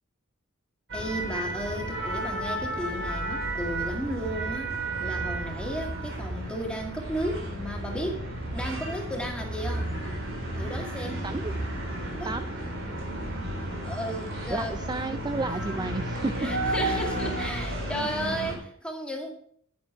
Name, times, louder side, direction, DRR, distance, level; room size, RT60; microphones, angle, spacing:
voice 1, 0.9-9.9 10.6-11.2 12.2-12.4 13.8-14.8 16.4-19.3, equal, 5° left, 1 dB, 2.1 m, -34 dB
sound 1, 0.9-18.6, right 1 dB, 60° right, 3.5 m, -32 dB
voice 2, 11.2-11.5 12.2-12.4 14.5-16.5 16.8-17.0 17.4-17.5, right 3 dB, 20° right, 11 dB, 0.4 m, -32 dB
10.5 x 9.5 x 4.5 m, 0.62 s
head